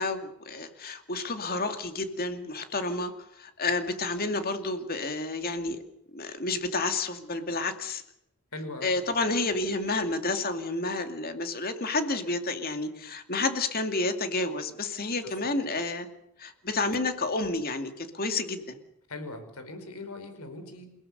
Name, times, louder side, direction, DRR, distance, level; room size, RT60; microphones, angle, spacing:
voice 1, 0.0-5.8 6.1-8.0 8.8-16.1 16.4-18.6, left 3 dB, 40° left, 7 dB, 2.4 m, -30 dB
voice 2, 8.5-8.9 15.2-15.5 19.1-20.9, left 2 dB, 80° left, 9 dB, 5.1 m, -40 dB
29.0 x 17.0 x 6.8 m, 0.79 s
head